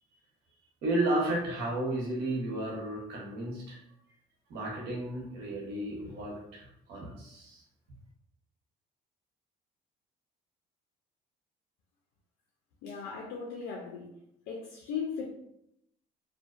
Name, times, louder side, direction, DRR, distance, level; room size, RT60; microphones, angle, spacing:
voice 1, 0.8-3.8 4.5-7.6, right 1 dB, 80° right, -2 dB, 0.9 m, -33 dB
voice 2, 12.8-14.1 14.5-15.3, left 6 dB, 80° left, -1 dB, 0.4 m, -37 dB
2.5 x 2.1 x 2.4 m, 0.77 s
cardioid pair, 110°, 17 cm